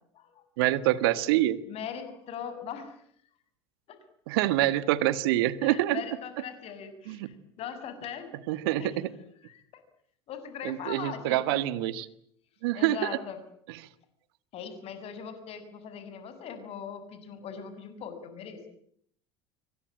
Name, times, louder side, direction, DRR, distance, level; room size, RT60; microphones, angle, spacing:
voice 1, 0.6-1.6 4.3-6.0 7.1-7.3 8.5-9.1 10.6-12.1 12.6-13.2, right 15 dB, 65° right, 16 dB, 1.6 m, -26 dB
voice 2, 1.7-3.0 3.9-4.0 5.6-8.3 8.8-9.0 9.4-9.8 10.3-11.9 12.7-13.4 14.5-18.6, left 7 dB, 50° left, 10 dB, 6.9 m, -40 dB
27.0 x 24.0 x 8.8 m, 0.67 s
figure-of-eight pair, 70°, 13 cm